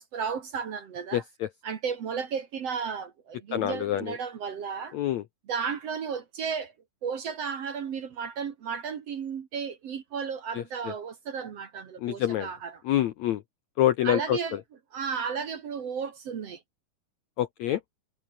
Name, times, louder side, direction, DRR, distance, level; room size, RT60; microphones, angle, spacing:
voice 1, 0.0-1.2 1.6-5.0 5.5-6.7 7.0-12.7 14.0-14.6 14.9-16.6, right 6 dB, 50° right, 2.2 m, -33 dB
voice 2, 1.1-1.5 3.5-4.2 4.9-5.2 10.5-10.9 12.0-12.5 12.8-13.4 13.8-14.6 17.4-17.8, left 12 dB, 70° left, 1.7 m, -27 dB
omnidirectional pair, 4.3 m